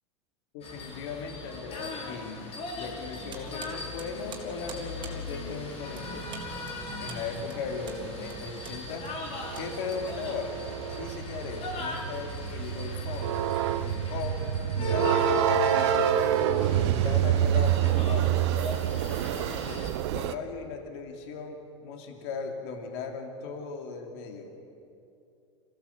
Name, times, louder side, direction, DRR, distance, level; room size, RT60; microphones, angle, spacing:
voice 1, 0.5-2.4 2.7-6.3 7.0-9.1 9.5-10.5 10.9-13.3 13.8-14.4 14.7-18.3 19.0-19.8 20.1-24.5, left 5 dB, 60° left, 4 dB, 3.1 m, -38 dB
sound 1, 0.6-19.9, left 2 dB, 40° left, 4.2 m, -37 dB
sound 2, 3.3-10.5, right 7 dB, 30° right, 3.8 m, -48 dB
sound 3, 6.1-20.4, right 12 dB, 60° right, 0.9 m, -28 dB
26.5 x 16.0 x 8.4 m, 2.6 s
hypercardioid pair, 90°, 15 cm